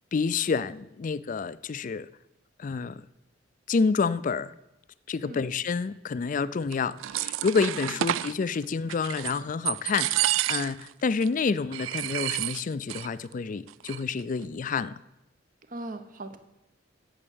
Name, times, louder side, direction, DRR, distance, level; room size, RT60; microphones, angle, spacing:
voice 1, 0.1-2.1 2.6-3.0 3.7-4.5 5.1-15.0, left 5 dB, 40° left, 17 dB, 0.4 m, -28 dB
sound 1, 6.7-8.3 8.9-9.4 9.7-10.9 11.2-11.3 11.7-13.1 13.3-13.4 13.7-14.2, right 14 dB, 85° right, 0.3 m, -29 dB
voice 2, 7.8-8.2 15.7-16.4, right 2 dB, 45° right, 10 dB, 0.9 m, -40 dB
8.7 x 7.2 x 8.6 m, 0.90 s
head